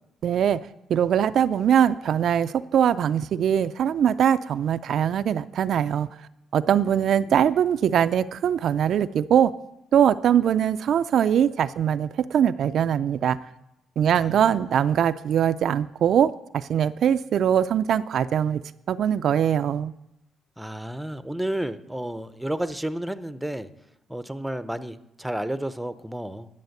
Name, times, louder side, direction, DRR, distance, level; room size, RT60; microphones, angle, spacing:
voice 1, 0.2-0.6 0.9-6.1 6.5-9.5 9.9-13.4 14.0-18.6 18.9-19.9, right 9 dB, 65° right, 11 dB, 0.3 m, -22 dB
voice 2, 14.1-14.8 20.6-23.7 24.1-26.5, right 1 dB, 5° right, 12 dB, 0.6 m, -31 dB
10.5 x 7.1 x 6.6 m, 0.85 s
cardioid pair, 90°, 0 cm